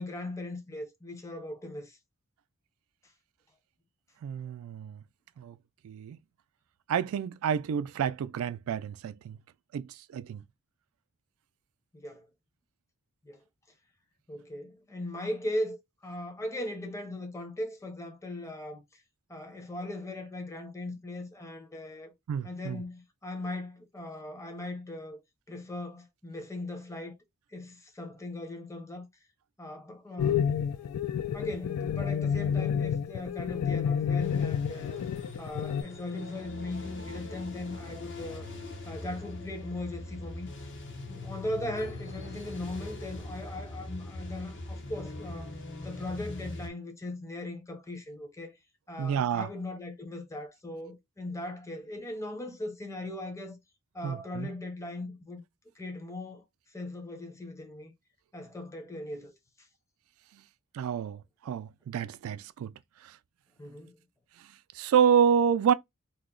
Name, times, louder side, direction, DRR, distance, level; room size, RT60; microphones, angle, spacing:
voice 1, 0.0-2.0 11.9-12.3 13.2-13.4 14.3-19.0 19.3-22.1 22.4-25.2 25.5-27.2 27.5-29.1 29.6-30.4 30.7-30.9 31.3-35.0 35.4-38.5 38.9-40.5 41.1-45.5 45.8-48.5 48.9-53.6 53.9-55.4 55.8-56.4 56.7-57.9 58.3-59.3 63.6-64.0, left 1 dB, 15° left, 0.6 m, -39 dB
voice 2, 4.2-5.0 5.4-5.6 5.8-6.2 6.9-9.4 9.7-10.4 22.3-22.8 49.0-49.5 54.0-54.5 60.7-62.7 64.7-65.7, right 7 dB, 70° right, 0.3 m, -28 dB
sound 1, 30.2-35.8, left 7 dB, 85° left, 0.3 m, -29 dB
sound 2, 34.2-46.7, left 2 dB, 55° left, 0.7 m, -41 dB
2.8 x 2.0 x 3.7 m
head